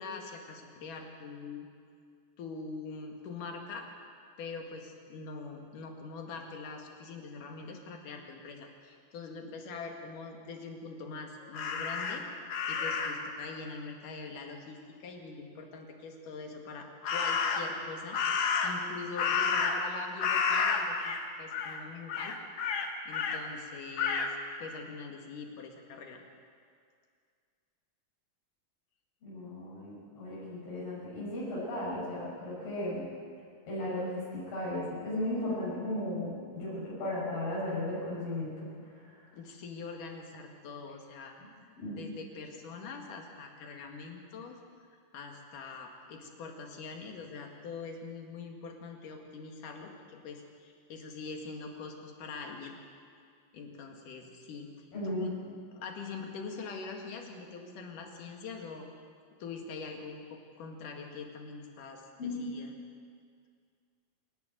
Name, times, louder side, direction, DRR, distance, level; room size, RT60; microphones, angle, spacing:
voice 1, 0.0-1.7 2.4-3.9 4.4-12.2 12.7-18.2 18.6-22.3 22.7-24.3 24.6-26.2 39.3-41.4 41.9-44.6 45.1-52.8 53.5-54.7 55.0-55.4 55.7-58.9 59.4-62.7, left 4 dB, 70° left, 2 dB, 3.5 m, -43 dB
Crow, 11.5-13.3 17.0-17.8 18.1-19.9 20.2-21.2 21.5-21.8 22.1-23.4 24.0-24.3, left 5 dB, 55° left, 1.9 m, -30 dB
voice 2, 29.2-33.1 33.7-38.7 41.4-41.5 41.8-42.1 54.9-55.3 62.2-62.4, left 1 dB, 90° left, -8 dB, 7.9 m, -35 dB
27.5 x 11.0 x 9.1 m, 2.2 s
omnidirectional pair, 3.9 m